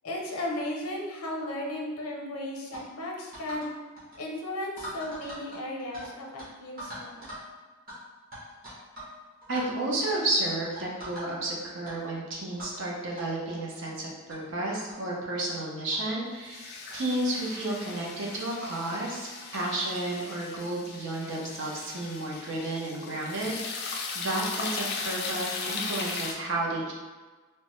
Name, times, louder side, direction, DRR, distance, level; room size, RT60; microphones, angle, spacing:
voice 1, 0.0-3.7 4.1-7.3, left 1 dB, 85° left, 0 dB, 0.6 m, -35 dB
sound 1, 2.7-2.9 3.3-3.7 4.0-4.2 4.8-6.1 6.4-6.5 6.8-7.5 7.9-8.0 8.3-9.1 9.4-9.6 10.1-10.3 10.8-11.5 11.8-12.0 12.6-12.8 13.2-13.3 14.0-14.1 14.3-14.4 14.9-15.0 15.9-16.0 16.9-17.1, equal, 40° right, 1.1 m, -42 dB
voice 2, 9.5-19.3 19.5-26.9, right 2 dB, 60° right, -3 dB, 0.7 m, -32 dB
sound 2, 16.5-26.3, left 4 dB, 45° left, 0.3 m, -37 dB
3.3 x 2.0 x 3.0 m, 1.3 s
head